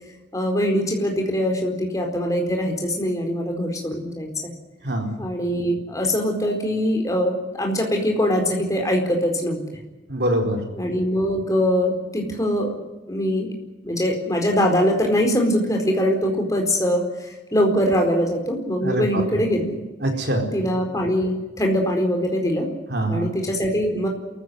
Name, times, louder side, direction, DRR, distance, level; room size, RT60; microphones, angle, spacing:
voice 1, 0.3-4.5 5.2-9.8 10.7-12.8 13.1-13.5 13.8-19.7 20.5-22.7 23.0-24.1, equal, 15° left, 2 dB, 4.5 m, -22 dB
voice 2, 10.1-10.6 18.8-19.2 20.0-20.5 22.9-23.3, right 1 dB, 60° right, 3 dB, 4.4 m, -23 dB
27.5 x 15.0 x 9.8 m, 1.2 s
head